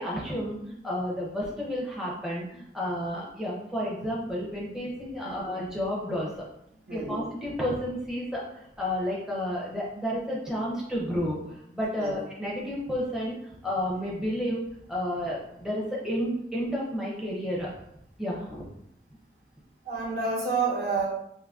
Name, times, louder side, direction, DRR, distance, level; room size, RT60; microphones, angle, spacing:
voice 1, 0.0-6.4 6.9-14.6 14.9-17.7 18.2-18.6, equal, 5° right, -5 dB, 0.5 m, -31 dB
voice 2, 19.8-21.1, right 4 dB, 55° right, -5 dB, 1.1 m, -29 dB
3.7 x 2.8 x 2.3 m, 0.77 s
head